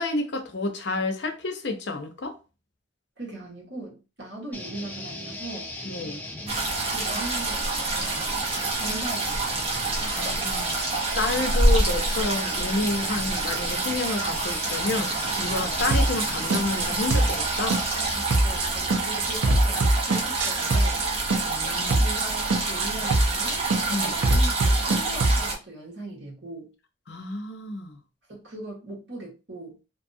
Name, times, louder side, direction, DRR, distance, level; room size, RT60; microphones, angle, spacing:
voice 1, 0.0-2.4 5.8-6.2 10.0-10.8 11.1-17.8 21.5-22.0 23.9-24.2 27.1-28.0, left 2 dB, 65° left, 0.6 m, -30 dB
voice 2, 3.2-5.7 6.9-8.3 8.7-9.6 15.8-16.1 18.4-21.0 21.9-26.7 28.3-29.8, right 2 dB, 65° right, 1.2 m, -39 dB
sound 1, 4.5-18.2, left 1 dB, 10° left, 0.4 m, -37 dB
sound 2, 6.5-25.5, right 2 dB, 30° right, 0.6 m, -27 dB
sound 3, 15.9-16.3 16.5-16.9 17.1-17.5 17.7-18.1 18.3-18.7 18.9-21.1 21.3-21.7 21.9-22.3 22.5-22.9 23.1-23.5 23.7-25.4, right 2 dB, 85° right, 0.5 m, -22 dB
2.6 x 2.3 x 2.6 m
head